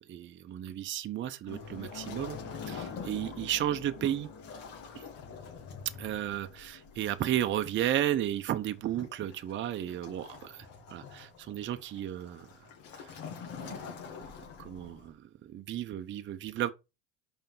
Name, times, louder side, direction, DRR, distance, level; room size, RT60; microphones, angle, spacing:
voice 1, 0.1-2.4 2.7-4.3 6.0-12.5 12.9-13.1 13.6-13.9 14.6-16.7, right 11 dB, 35° right, 0.7 m, -33 dB
Waves surf, 1.5-15.1, left 6 dB, 70° left, 2.2 m, -47 dB
sound 1, 1.5-10.4 10.7-10.9 13.0-13.1, left 5 dB, 45° left, 2.4 m, -48 dB
5.6 x 4.5 x 5.4 m
supercardioid pair, 110°, 36 cm